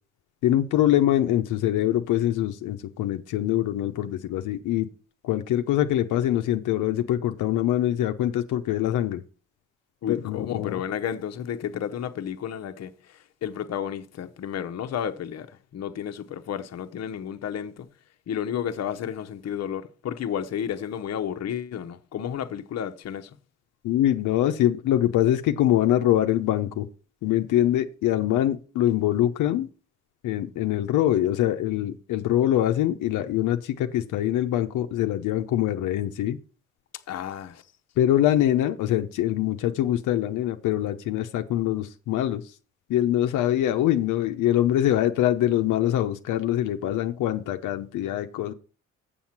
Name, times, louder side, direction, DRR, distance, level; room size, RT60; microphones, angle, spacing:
voice 1, 0.4-4.9 5.2-9.2 10.1-10.8 23.8-26.9 27.2-29.7 30.2-36.4 38.0-42.4 42.9-48.5, left 12 dB, 85° left, 0.8 m, -24 dB
voice 2, 10.0-17.9 18.3-23.4 37.1-37.6, left 9 dB, 60° left, 0.9 m, -32 dB
7.3 x 7.0 x 5.8 m
cardioid pair, 90°, 30 cm